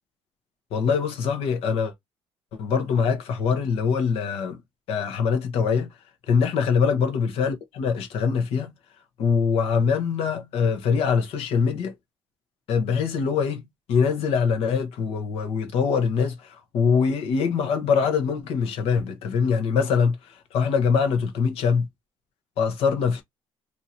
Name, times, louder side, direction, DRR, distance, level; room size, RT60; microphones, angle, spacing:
voice 1, 0.7-1.9 2.5-4.6 4.9-5.9 6.3-8.7 9.2-11.9 12.7-21.9 22.6-23.2, left 6 dB, 70° left, 1.0 m, -23 dB
2.7 x 2.6 x 4.3 m
cardioid pair, 165°, 11 cm